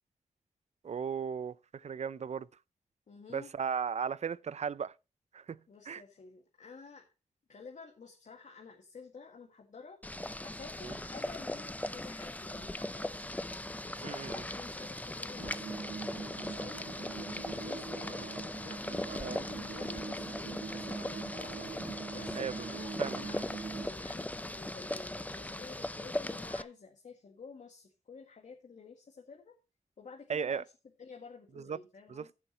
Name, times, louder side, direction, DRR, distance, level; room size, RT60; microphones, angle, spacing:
voice 1, 0.8-2.5 3.3-4.9 5.3-5.6 5.9-6.0 14.0-14.4 19.1-19.4 22.3-22.7 23.0-23.2 30.3-30.6 31.7-31.8 32.1-32.3, right 7 dB, 55° right, 0.5 m, -36 dB
voice 2, 3.1-3.5 5.7-7.1 7.5-10.0 10.4-18.3 18.6-21.8 22.1-23.5 23.8-29.6 30.0-30.7 31.0-32.3, left 5 dB, 65° left, 1.9 m, -51 dB
Boiling, 10.0-26.6, left 1 dB, 10° left, 0.6 m, -39 dB
sound 1, 15.4-23.9, right 4 dB, 75° right, 1.8 m, -43 dB
15.5 x 7.0 x 3.0 m
cardioid pair, 55°, 13 cm